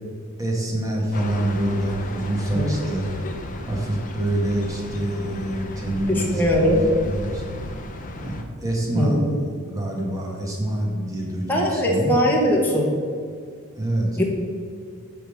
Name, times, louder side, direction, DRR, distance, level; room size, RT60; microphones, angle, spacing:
voice 1, 0.4-3.1 3.7-6.7 7.0-7.4 8.2-9.2 9.7-12.1 13.8-14.2, right 1 dB, 15° right, -2 dB, 1.4 m, -26 dB
sound 1, 1.1-8.4, left 1 dB, 35° left, 0.7 m, -35 dB
voice 2, 6.1-6.8 8.9-9.3 11.5-12.9 14.2-14.3, equal, 10° left, -3 dB, 1.1 m, -20 dB
9.0 x 3.5 x 6.3 m, 2.1 s
head